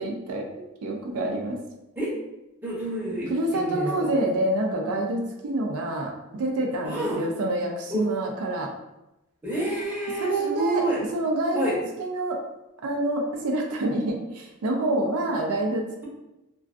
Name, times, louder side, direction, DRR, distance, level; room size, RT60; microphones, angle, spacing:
voice 1, 0.0-1.6 3.3-8.7 10.2-10.9 11.1-12.4 12.8-16.0, right 1 dB, 85° right, 1 dB, 0.4 m, -27 dB
voice 2, 2.6-4.1 6.8-7.2 7.9-8.0 9.4-11.0 11.5-11.8, right 1 dB, 10° right, -7 dB, 0.7 m, -28 dB
2.3 x 2.3 x 2.4 m, 0.93 s
head